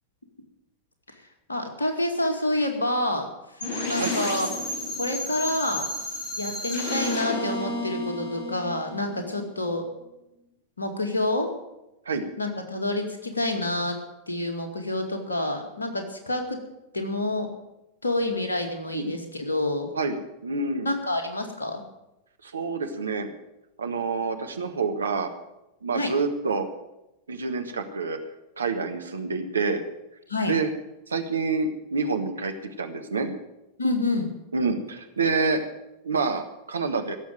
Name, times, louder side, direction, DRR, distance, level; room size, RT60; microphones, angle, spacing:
voice 1, 1.5-3.3 3.8-4.7 5.0-5.9 6.4-9.9 10.8-11.5 12.4-14.0 14.3-16.6 16.9-17.5 18.0-19.9 20.8-21.8 25.9-26.1 30.3-30.6 33.8-34.3, left 1 dB, 75° left, 5 dB, 2.2 m, -28 dB
sound 1, 3.6-9.4, left 1 dB, 50° left, 7.5 m, -31 dB
voice 2, 20.4-20.9 22.4-23.3 23.8-25.3 25.8-26.7 27.3-28.2 28.6-29.8 30.5-30.7 31.1-32.5 32.8-33.3 34.5-35.6 36.0-37.2, right 4 dB, 75° right, 6 dB, 1.5 m, -27 dB
16.5 x 7.2 x 9.2 m, 0.92 s
figure-of-eight pair, 90°, 0 cm